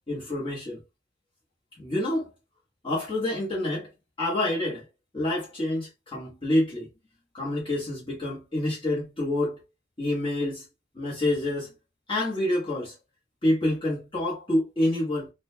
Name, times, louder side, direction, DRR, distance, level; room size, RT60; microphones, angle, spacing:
voice 1, 0.1-0.8 1.8-2.3 2.8-3.9 4.2-4.8 5.1-6.9 7.3-9.6 10.0-10.6 10.9-11.7 12.1-12.9 13.4-15.3, left 1 dB, 25° left, 1.2 m, -27 dB
4.0 x 2.2 x 2.8 m
head